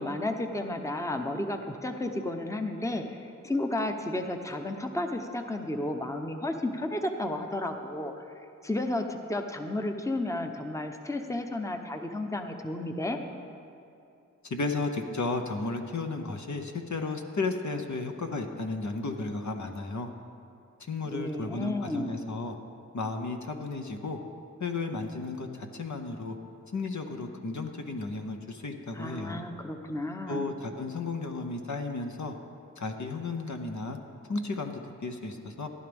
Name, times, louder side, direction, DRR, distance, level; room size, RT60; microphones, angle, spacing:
voice 1, 0.0-8.1 8.6-13.2 21.0-22.2 28.9-30.5, left 1 dB, 10° left, 5 dB, 0.8 m, -32 dB
voice 2, 14.4-20.1 20.9-22.5 22.9-24.2 24.6-26.3 26.7-29.4 30.3-32.3 32.8-34.0 34.3-35.7, left 3 dB, 60° left, 4 dB, 1.0 m, -34 dB
15.0 x 11.0 x 3.5 m, 2.7 s
cardioid pair, 45°, 32 cm